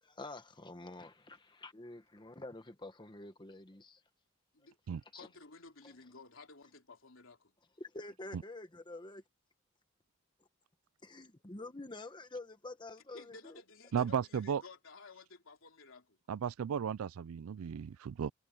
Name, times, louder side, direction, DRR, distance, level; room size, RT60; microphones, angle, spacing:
voice 1, 0.0-4.0 5.1-5.3 5.8-5.9 7.8-9.2 11.0-13.6, left 2 dB, 20° left, 1.1 m, -48 dB
voice 2, 5.2-7.6 13.1-16.2, left 3 dB, 65° left, 3.6 m, -54 dB
voice 3, 13.9-14.6 16.3-18.3, right 7 dB, 80° right, 0.4 m, -35 dB
head